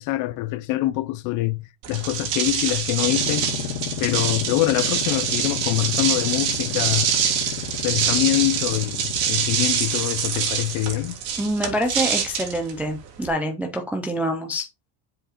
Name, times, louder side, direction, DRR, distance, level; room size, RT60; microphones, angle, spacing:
voice 1, 0.0-3.5 4.0-7.1 7.8-11.2, left 17 dB, 40° left, 0.6 m, -24 dB
sound 1, 1.8-13.3, right 8 dB, 80° right, 3.2 m, -25 dB
sound 2, 2.9-10.3, left 8 dB, 60° left, 2.3 m, -33 dB
voice 2, 11.4-14.7, equal, 5° right, 0.3 m, -26 dB
7.6 x 5.0 x 4.3 m
cardioid pair, 165°, 47 cm